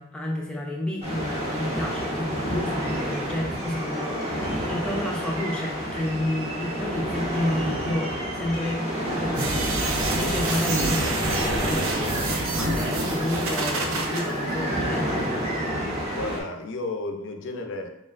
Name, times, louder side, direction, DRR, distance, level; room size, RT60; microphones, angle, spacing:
voice 1, 0.0-8.8 9.2-15.2, left 1 dB, 5° left, -2 dB, 0.5 m, -31 dB
sound 1, 1.0-16.4, equal, 30° right, 1.2 m, -29 dB
sound 2, 9.3-14.2, right 2 dB, 65° right, 0.6 m, -28 dB
voice 2, 16.1-17.9, left 2 dB, 55° left, 5 dB, 0.5 m, -33 dB
4.2 x 3.7 x 2.5 m, 0.83 s
head